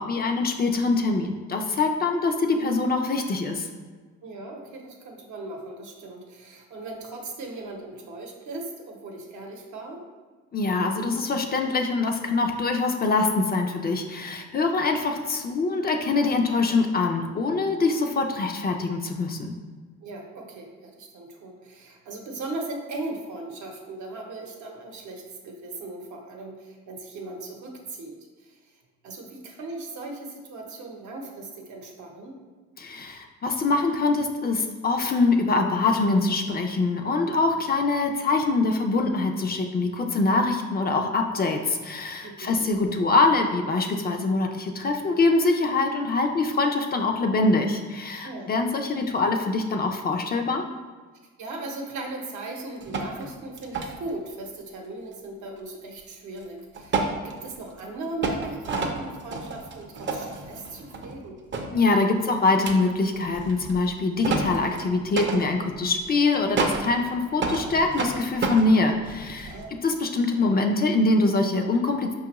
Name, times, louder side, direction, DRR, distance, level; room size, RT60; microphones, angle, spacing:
voice 1, 0.0-3.7 10.5-19.5 32.8-50.6 61.7-69.5 69.8-72.1, left 3 dB, 30° left, 4 dB, 0.4 m, -24 dB
voice 2, 4.2-10.0 14.5-14.9 20.0-32.3 42.2-42.7 48.2-48.5 51.4-61.4 69.5-69.8, right 2 dB, 75° right, 1 dB, 0.8 m, -38 dB
sound 1, 52.8-53.3 53.6-54.0 56.4-56.5 56.7-57.8 58.2-61.3 61.5-61.7 62.5-69.7, right 3 dB, 40° right, 0.5 m, -30 dB
5.0 x 2.4 x 2.9 m, 1.4 s
cardioid pair, 90°, 30 cm